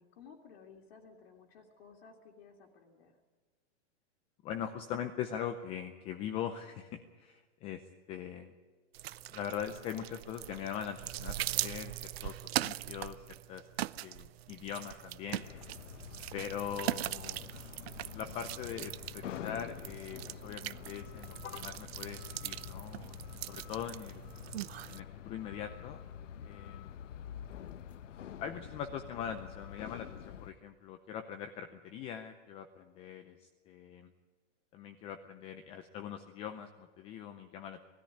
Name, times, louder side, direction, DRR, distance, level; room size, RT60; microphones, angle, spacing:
voice 1, 0.0-3.2, left 5 dB, 55° left, 0 dB, 2.4 m, -56 dB
voice 2, 4.4-8.5 9.3-13.7 14.0-15.5 16.3-17.4 18.1-24.3 24.9-26.0 26.4-26.9 28.4-34.1 34.7-37.8, left 8 dB, 15° left, 8 dB, 0.5 m, -42 dB
sound 1, 8.9-25.0, right 14 dB, 55° right, 0.6 m, -41 dB
sound 2, 15.4-30.5, left 9 dB, 80° left, 1.1 m, -47 dB
19.0 x 13.5 x 10.0 m, 1.5 s
hypercardioid pair, 155°, 36 cm